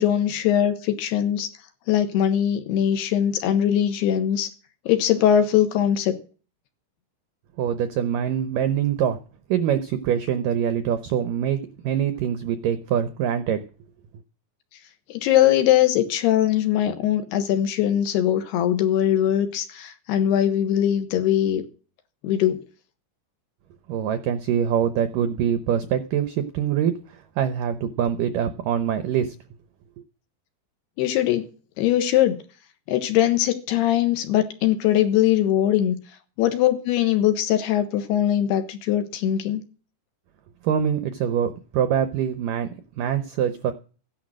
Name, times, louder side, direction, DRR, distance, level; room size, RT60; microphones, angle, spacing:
voice 1, 0.0-1.5 1.9-4.5 4.9-6.2 15.1-21.6 22.2-22.6 31.0-31.5 31.8-32.4 32.9-36.0 36.4-39.6, left 11 dB, 75° left, 8 dB, 3.2 m, -21 dB
voice 2, 7.6-9.2 9.5-13.6 23.9-29.4 40.6-43.7, right 9 dB, 80° right, 10 dB, 1.9 m, -24 dB
15.5 x 10.5 x 6.4 m, 0.37 s
omnidirectional pair, 5.0 m